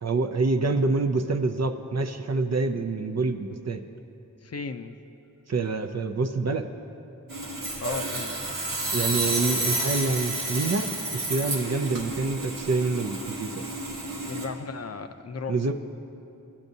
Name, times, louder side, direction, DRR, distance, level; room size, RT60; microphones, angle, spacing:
voice 1, 0.0-3.8 5.5-6.7 8.9-13.6 15.5-15.7, right 3 dB, 55° right, 7 dB, 0.5 m, -26 dB
voice 2, 4.4-5.0 7.8-8.8 14.3-15.7, left 5 dB, 50° left, 8 dB, 0.5 m, -36 dB
Sawing, 7.3-14.5, right 2 dB, 85° right, 1.1 m, -30 dB
16.5 x 7.2 x 2.7 m, 2.8 s
wide cardioid pair, 50°, 32 cm